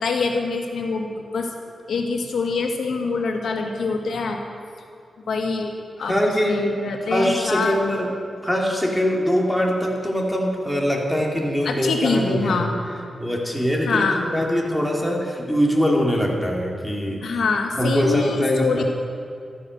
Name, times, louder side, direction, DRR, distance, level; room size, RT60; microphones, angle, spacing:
voice 1, 0.0-1.5 1.9-4.4 5.3-8.0 11.6-12.7 13.8-14.3 17.2-18.8, left 4 dB, 80° left, 2 dB, 2.2 m, -24 dB
voice 2, 6.0-6.7 7.1-8.1 8.4-12.6 13.2-17.3 17.8-18.8, equal, 5° left, -1 dB, 3.0 m, -22 dB
15.0 x 13.0 x 6.6 m, 2.5 s
wide cardioid pair, 90°, 0 cm